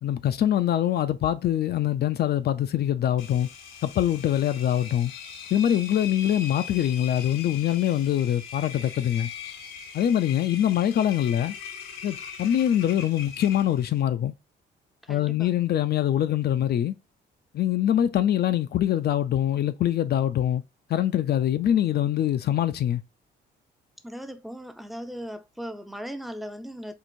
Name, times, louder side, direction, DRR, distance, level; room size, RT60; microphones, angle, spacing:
voice 1, 0.0-3.5 3.8-5.1 5.5-9.3 9.9-11.6 12.0-14.3 15.1-16.9 17.5-20.6 20.9-23.0, left 11 dB, 55° left, 0.4 m, -24 dB
Engine, 3.2-14.0, left 7 dB, 85° left, 0.8 m, -40 dB
voice 2, 15.0-15.5 24.0-26.9, equal, ahead, 0.5 m, -38 dB
4.5 x 2.5 x 2.5 m
cardioid pair, 90°, 20 cm